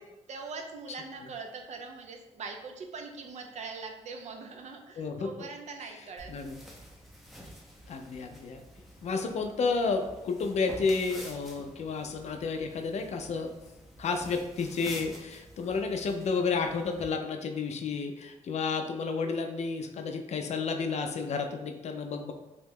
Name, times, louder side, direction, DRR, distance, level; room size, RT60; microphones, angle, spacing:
voice 1, 0.3-6.3, right 4 dB, 65° right, 3 dB, 0.4 m, -42 dB
voice 2, 5.0-5.3 6.3-6.6 7.9-8.6 9.0-13.5 14.0-22.3, left 4 dB, 60° left, 5 dB, 0.4 m, -31 dB
sound 1, 6.2-17.1, equal, ahead, 0.5 m, -49 dB
2.8 x 2.1 x 3.4 m, 0.98 s
wide cardioid pair, 130°, 13 cm